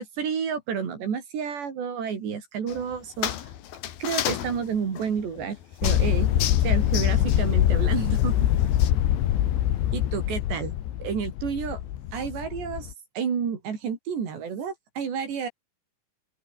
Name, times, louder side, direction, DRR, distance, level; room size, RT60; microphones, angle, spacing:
voice 1, 0.0-3.3 4.0-5.6 5.8-6.3 6.6-8.3 9.9-10.7 11.0-11.8 12.1-15.5, right 7 dB, 70° right, 6.2 m, -30 dB
sound 1, 2.7-8.9, left 11 dB, 65° left, 3.3 m, -35 dB
sound 2, 5.8-12.9, left 12 dB, 85° left, 4.2 m, -24 dB
open air
omnidirectional pair, 5.1 m